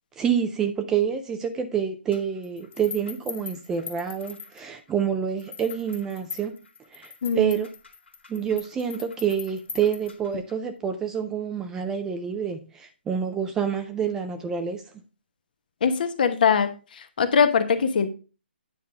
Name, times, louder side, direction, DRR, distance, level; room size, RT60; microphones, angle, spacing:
voice 1, 0.2-6.6 6.9-7.7 8.3-14.8, right 7 dB, 10° right, 0.3 m, -27 dB
sound 1, 2.1-4.9 5.4-10.5, left 6 dB, 85° left, 2.1 m, -42 dB
voice 2, 7.2-7.5 15.8-18.1, left 6 dB, 50° left, 1.0 m, -22 dB
9.4 x 5.4 x 3.3 m
hypercardioid pair, 160°, 6 cm